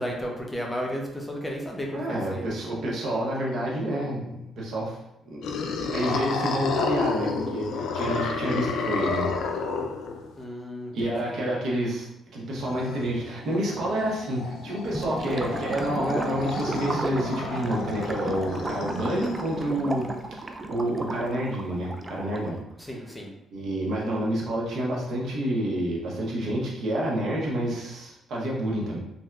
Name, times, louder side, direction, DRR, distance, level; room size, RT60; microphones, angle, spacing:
voice 1, 0.0-2.5 10.4-11.5 22.9-23.3, equal, 10° left, -1 dB, 0.6 m, -33 dB
voice 2, 1.9-5.0 5.3-5.4 5.9-9.3 10.9-12.1 12.3-20.1 20.4-22.6 23.5-29.0, right 1 dB, 70° right, -3 dB, 0.9 m, -28 dB
sound 1, 5.4-10.4 12.6-19.7, left 4 dB, 80° left, 0.4 m, -31 dB
Gurgling / Liquid, 14.8-22.6, right 2 dB, 25° right, 0.3 m, -34 dB
3.3 x 2.6 x 2.3 m, 0.85 s
cardioid pair, 90°, 0 cm